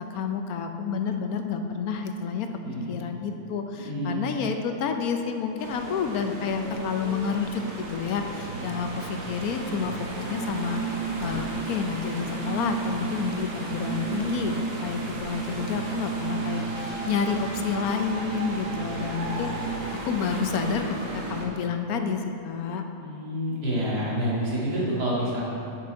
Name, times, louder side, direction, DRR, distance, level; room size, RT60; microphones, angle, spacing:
voice 1, 0.0-2.5 2.9-7.6 7.9-19.8 20.0-22.8, left 6 dB, 70° left, 5 dB, 1.0 m, -29 dB
voice 2, 2.6-3.0 3.8-4.3 23.0-25.4, equal, 75° right, -7 dB, 2.6 m, -28 dB
sound 1, 5.6-21.5, right 4 dB, 55° right, 1.4 m, -33 dB
9.5 x 5.9 x 4.5 m, 2.7 s
omnidirectional pair, 1.7 m